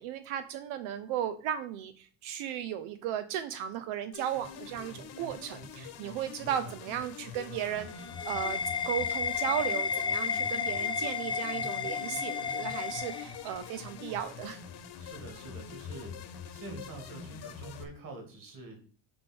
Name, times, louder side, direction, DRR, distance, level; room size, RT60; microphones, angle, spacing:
voice 1, 0.0-14.6, right 10 dB, 85° right, 10 dB, 0.7 m, -35 dB
sound 1, 4.1-17.8, left 6 dB, 55° left, 1.2 m, -45 dB
voice 2, 6.4-6.8 15.0-16.2 16.5-18.8, right 2 dB, 45° right, 4 dB, 2.6 m, -46 dB
sound 2, 7.4-13.9, left 6 dB, 10° left, 0.4 m, -33 dB
6.4 x 3.5 x 6.1 m, 0.43 s
cardioid pair, 125°, 48 cm